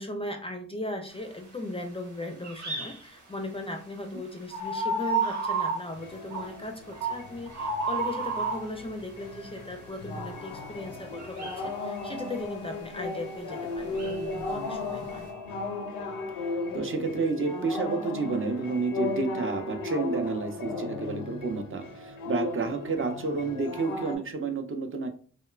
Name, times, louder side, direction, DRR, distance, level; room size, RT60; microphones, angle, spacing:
voice 1, 0.0-15.3, left 2 dB, 20° left, 4 dB, 0.4 m, -38 dB
sound 1, 2.4-3.0 4.5-5.8 6.3-6.5 6.9-8.6 11.2-11.6 13.8-14.4, right 3 dB, 65° right, 0.9 m, -30 dB
sound 2, 5.9-24.2, left 3 dB, 90° left, 0.5 m, -36 dB
voice 2, 16.3-25.1, right 4 dB, 40° right, 5 dB, 0.5 m, -30 dB
2.9 x 2.1 x 2.3 m, 0.43 s
cardioid pair, 50°, 31 cm